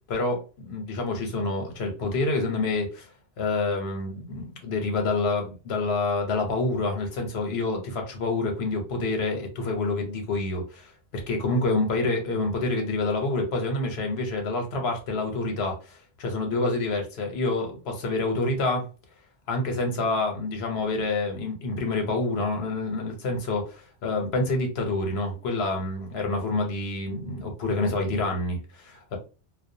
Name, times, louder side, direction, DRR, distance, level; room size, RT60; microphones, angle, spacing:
voice 1, 0.1-3.1 3.4-18.9 19.5-29.2, left 2 dB, 75° left, 1.0 m, -27 dB
2.3 x 2.2 x 2.6 m
omnidirectional pair, 1.1 m